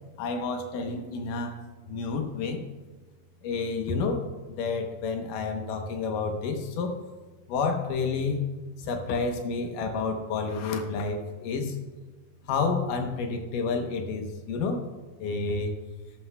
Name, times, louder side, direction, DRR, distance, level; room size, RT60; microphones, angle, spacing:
voice 1, 0.2-1.6 1.9-2.6 3.4-7.0 7.5-8.4 8.8-11.8 12.5-14.8 15.2-15.7, left 4 dB, 80° left, 4 dB, 2.6 m, -29 dB
13.5 x 11.5 x 2.2 m, 1.3 s
omnidirectional pair, 3.8 m